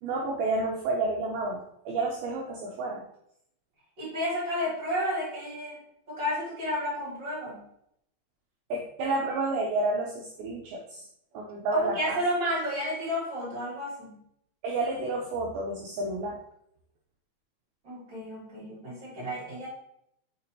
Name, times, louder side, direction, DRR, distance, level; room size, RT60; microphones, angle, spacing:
voice 1, 0.0-3.1 8.7-11.1 11.3-12.2 14.6-16.4, right 2 dB, 85° right, -1 dB, 2.2 m, -30 dB
voice 2, 4.0-5.8 6.1-7.6 11.7-14.2 17.8-19.7, equal, 30° right, -6 dB, 2.7 m, -31 dB
6.7 x 5.7 x 2.9 m, 0.73 s
omnidirectional pair, 5.2 m